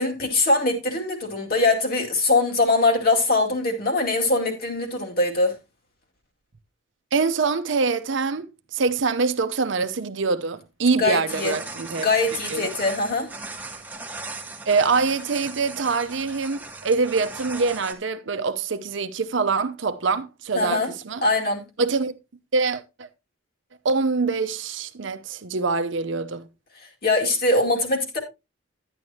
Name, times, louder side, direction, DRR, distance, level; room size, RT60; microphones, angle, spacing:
voice 1, 0.0-5.5 11.0-11.6 12.0-13.3 20.5-20.9 21.2-21.6 27.0-28.2, left 2 dB, 45° left, 2.3 m, -22 dB
voice 2, 7.1-12.1 12.5-12.7 14.7-21.2 21.8-22.1 22.5-23.1 23.8-26.5, right 4 dB, 60° right, 0.7 m, -24 dB
sound 1, 11.3-17.9, right 3 dB, 10° right, 1.3 m, -38 dB
11.0 x 9.8 x 2.8 m
head